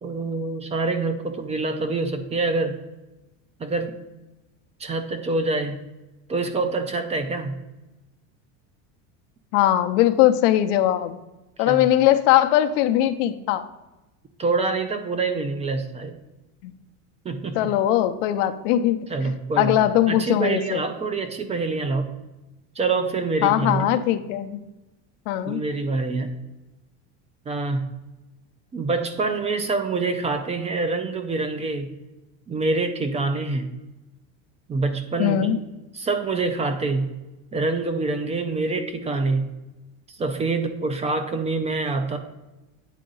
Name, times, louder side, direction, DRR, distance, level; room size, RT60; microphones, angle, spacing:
voice 1, 0.0-2.8 3.6-3.9 4.8-5.8 6.3-7.5 11.6-11.9 14.4-16.2 17.2-17.6 19.1-19.8 20.1-22.1 22.8-23.9 25.5-26.3 27.5-27.9 28.7-31.9 32.5-33.7 34.7-35.5 35.9-37.1 37.5-39.5 40.1-42.2, right 3 dB, 20° right, 8 dB, 0.4 m, -26 dB
voice 2, 9.5-11.2 11.6-13.7 16.6-16.7 17.5-19.0 19.6-20.8 23.4-24.6 25.3-25.6 35.2-35.6, left 12 dB, 85° left, 9 dB, 0.7 m, -20 dB
9.2 x 3.7 x 3.9 m, 1.0 s
cardioid pair, 155°, 36 cm